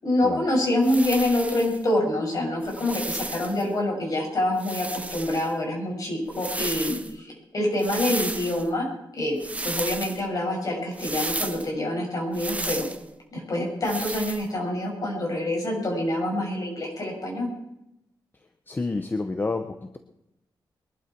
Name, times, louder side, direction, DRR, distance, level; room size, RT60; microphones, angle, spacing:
voice 1, 0.0-7.3 7.5-8.9 9.1-12.9 13.3-17.5, left 1 dB, 45° left, 0 dB, 6.7 m, -26 dB
sound 1, 0.8-1.8 2.6-3.6 4.6-5.5 6.3-7.1 7.8-8.7 9.4-10.2 10.9-11.7 12.3-13.0 13.8-14.4, right 2 dB, 15° right, 0.9 m, -33 dB
voice 2, 18.7-20.0, left 3 dB, 25° left, 7 dB, 0.9 m, -29 dB
22.5 x 12.0 x 4.6 m, 0.86 s
wide cardioid pair, 145°, 8 cm